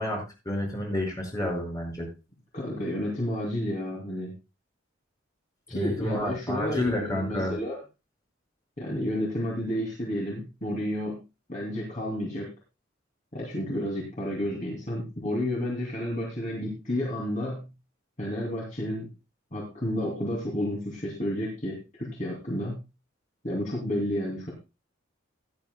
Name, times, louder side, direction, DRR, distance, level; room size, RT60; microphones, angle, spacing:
voice 1, 0.0-2.1 5.7-7.5, left 1 dB, 20° left, -1 dB, 5.3 m, -30 dB
voice 2, 2.5-4.3 5.7-7.8 8.8-11.2 11.5-12.5 13.3-17.7 18.2-19.1 19.5-22.8 23.4-24.5, left 1 dB, 40° left, -2 dB, 2.7 m, -31 dB
16.5 x 10.5 x 2.3 m, 0.27 s
head